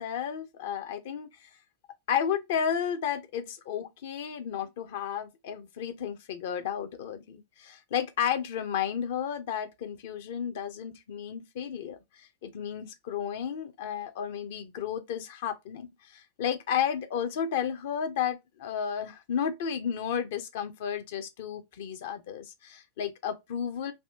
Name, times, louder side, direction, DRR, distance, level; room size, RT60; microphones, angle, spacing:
voice 1, 0.0-1.5 2.1-23.9, left 8 dB, 55° left, 0.6 m, -33 dB
3.4 x 2.6 x 2.8 m
figure-of-eight pair, 90°, 0 cm